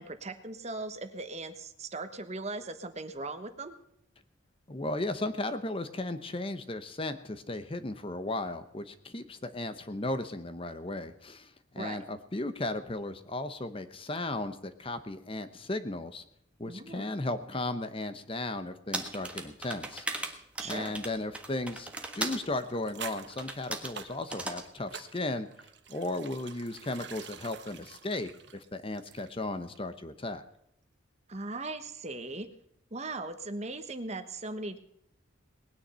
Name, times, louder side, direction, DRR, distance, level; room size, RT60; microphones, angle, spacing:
voice 1, 0.0-3.7 11.8-12.0 16.7-17.0 20.6-21.0 31.3-32.5 32.9-34.8, right 2 dB, 35° right, 9 dB, 1.2 m, -38 dB
voice 2, 4.7-16.2 16.6-20.4 20.7-21.9 22.1-25.5 25.9-30.4, left 2 dB, 25° left, 10 dB, 0.9 m, -35 dB
sound 1, 18.9-22.5 23.4-24.0 24.3-24.7, right 2 dB, 5° right, 1.4 m, -37 dB
sound 2, 21.9-29.5 29.7-29.9, right 7 dB, 60° right, 1.3 m, -48 dB
19.5 x 9.8 x 5.6 m, 0.75 s
head